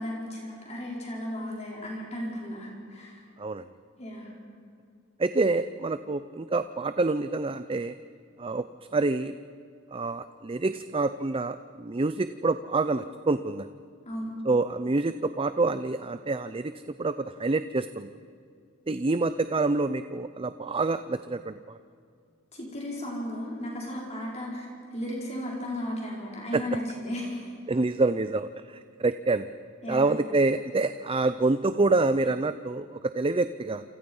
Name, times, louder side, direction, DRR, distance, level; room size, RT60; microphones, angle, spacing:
voice 1, 0.0-3.2 4.0-4.3 14.0-14.3 22.5-27.5 29.8-30.1, equal, 35° left, -3 dB, 5.1 m, -35 dB
voice 2, 5.2-7.9 8.4-8.7 8.9-9.3 9.9-13.7 14.5-16.7 17.0-18.1 18.9-21.8 26.5-26.6 27.7-29.5 29.9-33.8, right 3 dB, 25° right, 12 dB, 0.5 m, -27 dB
29.0 x 28.0 x 5.5 m, 2.3 s
head